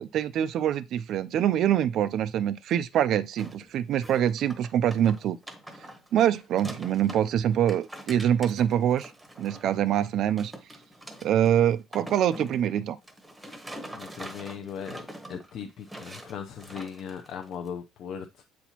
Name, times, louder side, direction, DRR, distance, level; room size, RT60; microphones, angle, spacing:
voice 1, 0.0-5.4 6.1-9.1 9.4-10.5 11.2-13.0, right 10 dB, 45° right, 0.3 m, -25 dB
sound 1, 3.4-3.7 3.9-7.3 7.5-10.0 10.4-17.7, right 1 dB, 5° right, 0.9 m, -44 dB
voice 2, 13.9-15.0 15.3-18.4, left 7 dB, 45° left, 0.5 m, -38 dB
8.1 x 4.2 x 2.9 m
cardioid pair, 175°, 0 cm